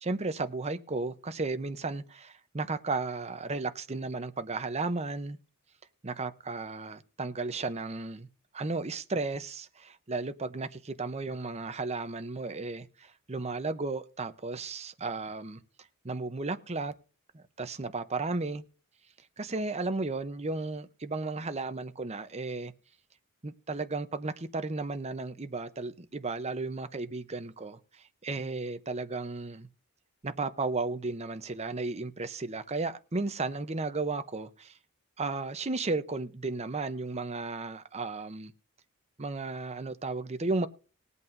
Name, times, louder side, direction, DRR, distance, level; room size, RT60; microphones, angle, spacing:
voice 1, 0.0-5.4 6.0-8.3 8.5-15.6 16.0-16.9 17.3-18.6 19.4-22.7 23.4-27.8 28.2-29.7 30.2-34.8 35.2-38.5 39.2-40.7, right 3 dB, 30° right, 0.8 m, -34 dB
20.5 x 8.3 x 2.7 m
head